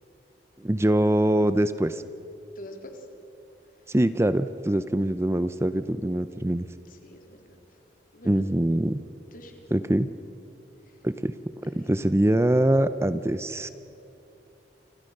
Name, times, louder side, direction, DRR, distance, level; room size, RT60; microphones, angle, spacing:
voice 1, 0.6-2.0 3.9-6.7 8.2-9.0 9.7-10.1 11.0-11.4 11.6-13.7, right 1 dB, 15° right, 12 dB, 0.6 m, -23 dB
voice 2, 2.6-3.0 6.9-7.6 8.1-8.4 9.3-9.7 11.6-11.9, left 1 dB, 50° left, 3 dB, 3.7 m, -45 dB
29.5 x 26.0 x 6.6 m, 2.8 s
head